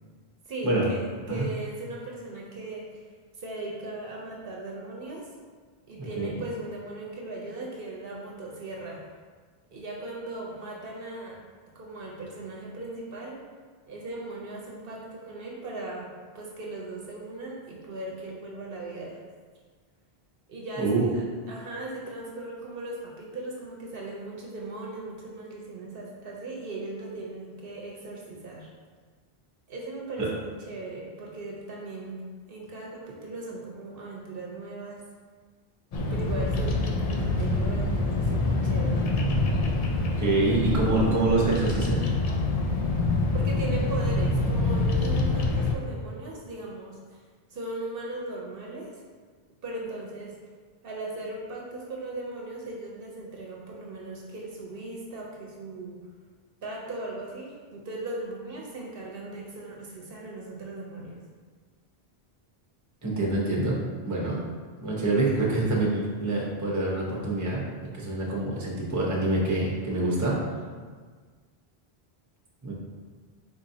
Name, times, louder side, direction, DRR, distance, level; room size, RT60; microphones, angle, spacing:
voice 1, 0.5-3.0 3.4-5.3 5.9-9.0 9.7-11.4 11.7-13.4 13.9-16.1 16.3-19.2 20.5-28.7 29.7-32.1 32.5-35.0 36.1-39.1 43.3-47.2 47.5-48.9 49.6-50.3 50.8-56.0 56.6-61.2, right 2 dB, 65° right, -2 dB, 0.9 m, -38 dB
voice 2, 6.0-6.3 20.8-21.1 40.2-42.0 63.0-63.8 64.0-64.4 64.8-67.6 67.9-70.3 72.6-72.7, right 2 dB, 20° right, -4 dB, 0.8 m, -26 dB
Bird vocalization bird call bird song, 35.9-45.7, left 2 dB, 55° left, 0.4 m, -26 dB
4.1 x 4.1 x 2.7 m, 1.5 s
omnidirectional pair, 1.0 m